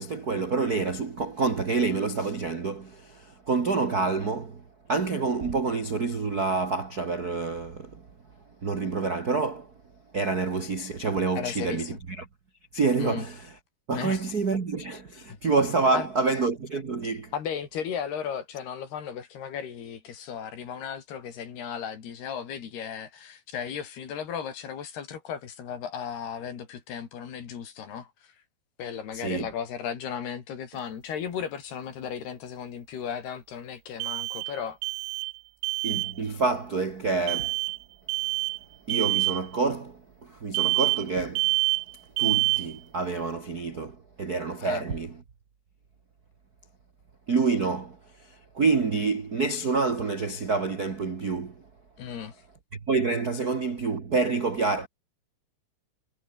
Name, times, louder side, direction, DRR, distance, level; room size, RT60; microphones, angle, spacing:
voice 1, 0.0-4.6 4.9-8.0 8.6-9.7 10.1-12.2 12.7-13.4 13.9-17.3 29.1-29.5 35.8-37.5 38.9-41.5 42.2-45.1 47.3-48.0 48.5-51.5 52.9-54.9, right 4 dB, 50° right, 1.1 m, -27 dB
voice 2, 11.4-12.0 13.0-13.3 13.9-14.3 15.3-15.4 15.9-16.1 17.3-28.3 28.8-34.8 44.6-44.9 52.0-52.4, left 8 dB, 70° left, 5.1 m, -35 dB
sound 1, 30.7-30.8 34.0-34.6 34.8-35.4 35.6-36.1 37.3-37.8 38.1-38.6 38.9-39.4 40.5-41.1 41.4-41.9 42.2-42.7, right 22 dB, 85° right, 2.6 m, -26 dB
omnidirectional pair, 4.8 m